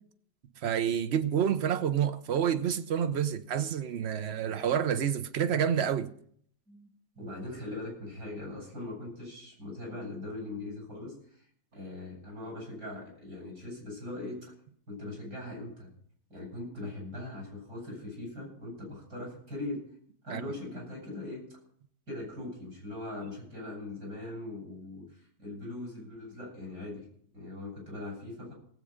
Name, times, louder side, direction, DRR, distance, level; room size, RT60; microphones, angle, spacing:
voice 1, 0.6-6.1 20.3-20.4, right 8 dB, 55° right, 0.8 m, -28 dB
voice 2, 7.1-11.5 11.7-14.4 14.9-15.9 16.3-19.8 20.2-21.4 22.1-27.1 27.3-28.5, left 2 dB, 75° right, 7.9 m, -40 dB
18.5 x 8.5 x 5.1 m
omnidirectional pair, 1.8 m